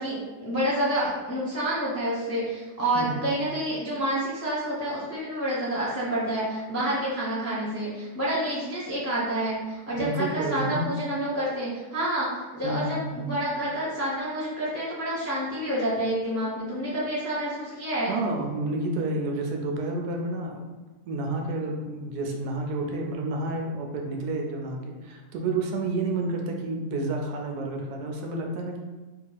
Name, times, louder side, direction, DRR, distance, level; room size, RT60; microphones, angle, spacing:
voice 1, 0.0-18.2, right 1 dB, 15° left, -8 dB, 0.5 m, -28 dB
voice 2, 2.9-3.4 9.9-10.8 12.6-13.3 18.1-20.6 21.1-28.8, right 2 dB, 75° right, 1 dB, 1.1 m, -30 dB
2.9 x 2.8 x 3.9 m, 1.2 s
omnidirectional pair, 1.8 m